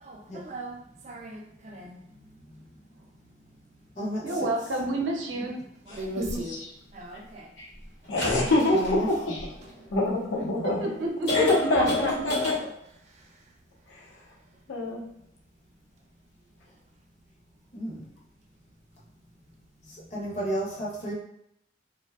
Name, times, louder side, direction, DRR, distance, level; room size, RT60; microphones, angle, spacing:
voice 1, 0.0-2.0 5.9-6.6 6.9-7.5, right 1 dB, 35° right, 2 dB, 0.3 m, -39 dB
voice 2, 2.1-2.6 4.0-4.3 8.7-9.1 17.7-18.1 19.8-21.1, equal, 40° left, -3 dB, 0.6 m, -32 dB
voice 3, 4.2-5.6 10.6-11.7, right 2 dB, 80° right, 0 dB, 0.6 m, -29 dB
voice 4, 6.2-6.7 7.6-7.7 8.1-9.4 9.9-10.9 11.3-12.5 13.9-14.0 14.7-15.0, left 2 dB, 85° left, -3 dB, 0.7 m, -26 dB
sound 1, 6.3-6.4 8.0-10.0 10.6-10.7 11.3-12.6, left 1 dB, 60° left, 0.9 m, -31 dB
2.6 x 2.1 x 2.3 m, 0.75 s
head